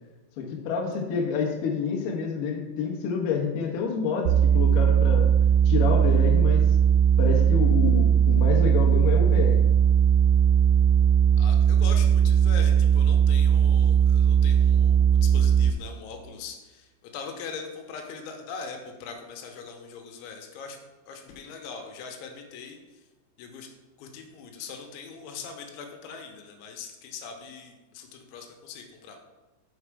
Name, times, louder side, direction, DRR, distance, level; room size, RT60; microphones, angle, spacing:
voice 1, 0.4-5.3 5.7-6.7 7.2-9.6, left 5 dB, 65° left, -1 dB, 2.3 m, -28 dB
sound 1, 4.3-15.7, right 8 dB, 85° right, 2.7 m, -19 dB
voice 2, 11.4-20.8 21.1-22.8 23.4-23.7 24.0-29.2, left 5 dB, 85° left, 3 dB, 3.2 m, -41 dB
7.7 x 5.0 x 4.7 m, 1.2 s
omnidirectional pair, 5.3 m